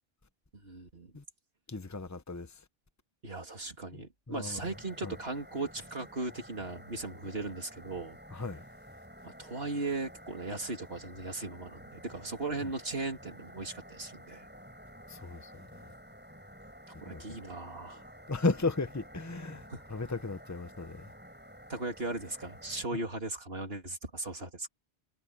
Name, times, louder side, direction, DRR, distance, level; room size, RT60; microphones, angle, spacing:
voice 1, 0.6-1.1 3.2-8.2 9.2-14.5 17.0-18.1 19.7-19.8 21.7-24.7, right 2 dB, 70° right, 3.5 m, -38 dB
voice 2, 1.7-2.6 3.9-4.7 5.0-5.1 8.3-8.6 15.1-15.9 17.0-17.4 18.3-21.1 22.9-23.0, left 3 dB, 15° left, 1.1 m, -35 dB
sound 1, 4.6-22.8, equal, 10° right, 6.5 m, -51 dB
omnidirectional pair, 1.0 m